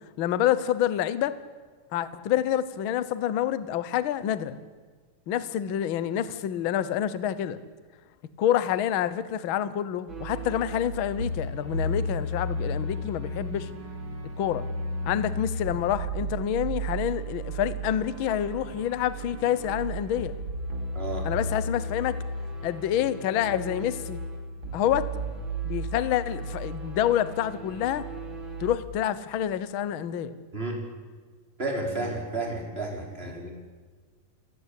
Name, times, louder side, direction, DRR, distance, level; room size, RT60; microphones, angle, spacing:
voice 1, 0.2-1.4 1.9-4.6 5.3-7.6 8.4-13.7 14.4-14.6 15.0-20.3 21.2-22.2 22.6-24.2 24.7-25.1 25.6-28.0 28.6-30.4 33.4-33.5, left 10 dB, 75° left, 14 dB, 1.1 m, -27 dB
sound 1, 10.1-28.8, right 1 dB, 35° right, 3.5 m, -34 dB
voice 2, 20.9-21.3 30.5-30.8 31.6-33.5, right 2 dB, 15° right, 1 dB, 4.5 m, -32 dB
30.0 x 17.0 x 8.4 m, 1.5 s
omnidirectional pair, 3.8 m